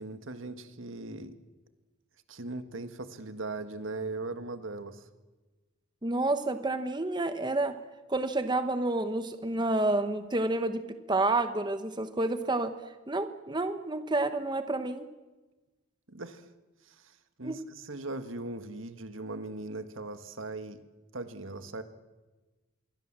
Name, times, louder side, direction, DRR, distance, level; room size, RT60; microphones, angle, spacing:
voice 1, 0.0-1.4 2.3-5.1 16.1-16.5 16.8-20.8 21.1-21.8, right 2 dB, 70° right, 10 dB, 1.8 m, -39 dB
voice 2, 6.0-7.7 8.1-12.7 13.1-15.1 17.4-17.6, right 2 dB, 20° right, 9 dB, 1.1 m, -29 dB
26.0 x 23.0 x 7.5 m, 1.2 s
head